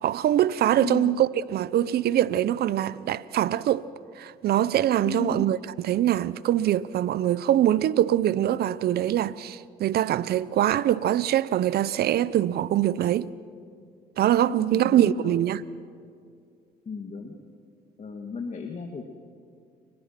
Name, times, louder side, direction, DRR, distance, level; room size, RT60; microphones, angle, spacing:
voice 1, 0.0-3.9 4.2-5.6 5.8-13.3 14.2-15.6, right 12 dB, 65° right, 0.8 m, -23 dB
voice 2, 0.8-1.2 5.0-5.5 14.5-15.5 16.9-17.4 18.0-19.1, left 4 dB, 40° left, 2.2 m, -34 dB
30.0 x 24.5 x 6.0 m
cardioid pair, 80°, 17 cm